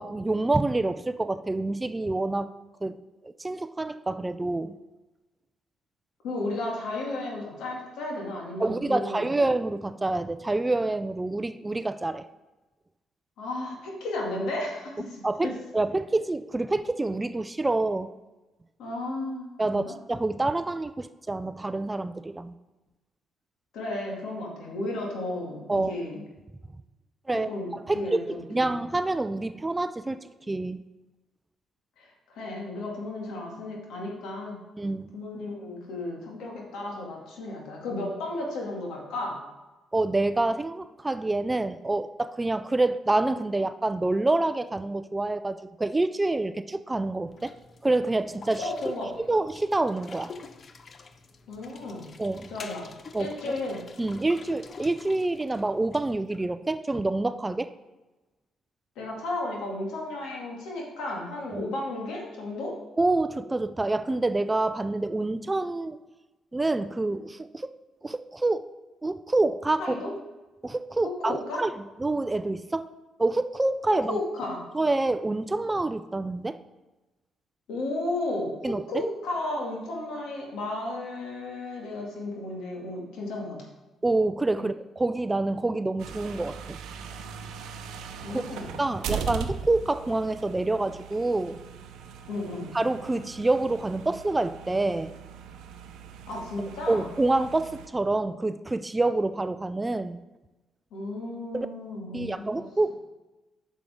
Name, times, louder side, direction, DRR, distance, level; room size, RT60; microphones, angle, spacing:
voice 1, 0.0-2.5 2.8-2.9 3.2-4.8 8.6-12.3 15.2-18.1 19.6-22.5 25.7-26.0 27.3-27.5 27.9-28.0 28.3-30.8 34.8-35.1 39.9-47.5 47.8-48.7 49.3-50.3 52.2-52.5 53.1-53.3 54.0-57.7 61.5-61.7 63.0-66.0 66.5-67.8 68.0-68.6 69.0-70.0 70.6-71.7 72.0-72.9 73.2-74.2 74.7-76.6 78.6-79.0 84.0-86.8 88.3-88.5 88.8-91.6 92.7-95.1 96.9-100.2 101.5-101.7 102.1-102.9, right 2 dB, 20° right, 12 dB, 0.3 m, -27 dB
voice 2, 6.2-9.2 13.4-15.5 18.8-19.9 23.7-26.2 27.3-27.7 27.9-28.7 32.0-34.6 35.1-39.4 48.6-49.3 51.5-52.1 52.5-52.9 53.2-53.8 59.0-62.7 69.8-70.1 71.0-71.6 74.0-74.6 77.7-83.7 84.6-84.7 88.2-88.8 92.3-92.7 96.3-97.1 100.9-102.6, left 2 dB, 85° left, -1 dB, 2.2 m, -34 dB
sound 1, 47.3-56.5, left 4 dB, 45° left, 0.6 m, -48 dB
sound 2, 86.0-97.9, right 7 dB, 85° right, 0.6 m, -40 dB
8.8 x 6.3 x 3.6 m, 1.1 s
cardioid pair, 90°, 0 cm